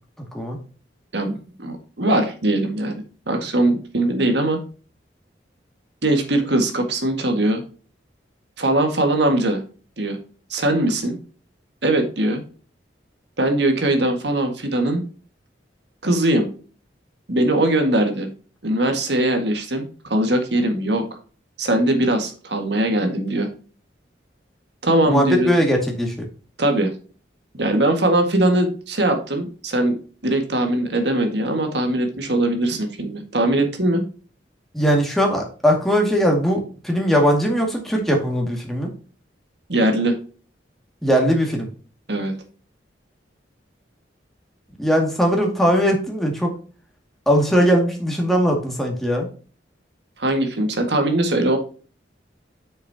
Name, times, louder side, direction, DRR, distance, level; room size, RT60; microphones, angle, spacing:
voice 1, 1.1-4.6 6.0-7.6 8.6-9.6 10.0-10.2 10.5-11.2 11.8-12.4 13.4-15.0 16.0-16.5 17.3-18.3 18.6-21.0 21.6-23.5 24.8-25.5 26.6-26.9 27.6-30.0 30.2-34.0 39.7-40.2 42.1-42.3 50.2-51.6, right 1 dB, 65° right, 5 dB, 1.8 m, -21 dB
voice 2, 25.1-26.3 34.7-38.9 41.0-41.7 44.8-46.5 47.3-49.3, equal, ahead, 0 dB, 2.1 m, -19 dB
8.3 x 6.5 x 2.8 m, 0.39 s
head